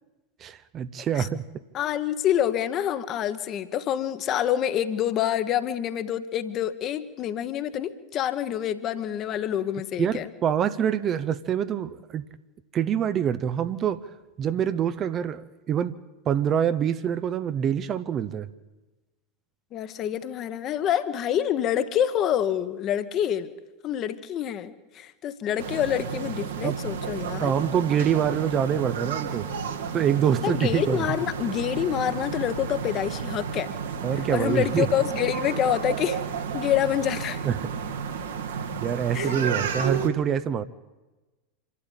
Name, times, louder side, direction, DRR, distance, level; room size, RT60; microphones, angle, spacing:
voice 1, 0.4-1.5 10.0-12.3 12.7-14.0 14.4-15.9 16.3-18.5 26.6-26.8 27.4-29.5 29.9-31.1 34.0-34.9 37.4-37.6 38.7-40.6, right 8 dB, 30° right, 13 dB, 0.8 m, -25 dB
voice 2, 1.7-10.3 19.7-23.5 23.8-27.5 30.4-33.7 34.2-36.2 36.5-37.4 39.1-39.4, left 10 dB, 35° left, 11 dB, 1.3 m, -27 dB
sound 1, 25.6-40.1, right 6 dB, 65° right, 2.0 m, -32 dB
26.5 x 12.5 x 8.9 m, 1.2 s
figure-of-eight pair, 85°, 0 cm